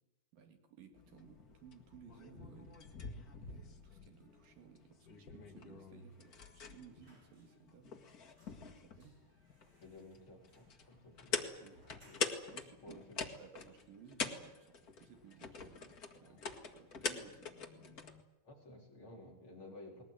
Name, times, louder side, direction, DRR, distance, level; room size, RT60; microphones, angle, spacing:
voice 1, 0.3-2.8 3.4-9.2 11.6-11.8 12.5-18.0, right 7 dB, 65° right, 5 dB, 3.8 m, -59 dB
sound 1, 0.9-18.2, left 5 dB, 55° left, 1.0 m, -45 dB
sound 2, 6.6-7.8 8.1-12.6 13.0-13.1 13.4-14.2 14.5-14.7 15.0-15.7 16.0-16.2, right 1 dB, 15° right, 6.7 m, -71 dB
voice 2, 9.7-11.7 12.0-12.3 12.8-13.4 16.2-16.4 18.4-20.0, left 2 dB, 35° left, 0 dB, 4.3 m, -55 dB
20.5 x 20.0 x 9.9 m, 0.98 s
omnidirectional pair, 4.5 m